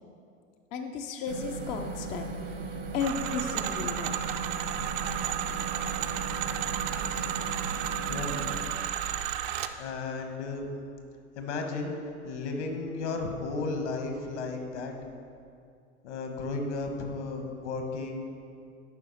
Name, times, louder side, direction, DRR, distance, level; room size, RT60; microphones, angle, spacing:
voice 1, 0.7-4.1, left 5 dB, 20° left, 4 dB, 0.3 m, -34 dB
sound 1, 1.3-8.7, right 4 dB, 70° right, 1.3 m, -37 dB
sound 2, 3.0-9.7, right 10 dB, 45° right, 0.5 m, -33 dB
voice 2, 8.1-8.4 9.8-10.7 11.4-12.0 12.2-14.9 16.0-18.3, left 3 dB, 65° left, 4 dB, 1.3 m, -34 dB
11.0 x 4.7 x 4.1 m, 2.4 s
hypercardioid pair, 95°, 37 cm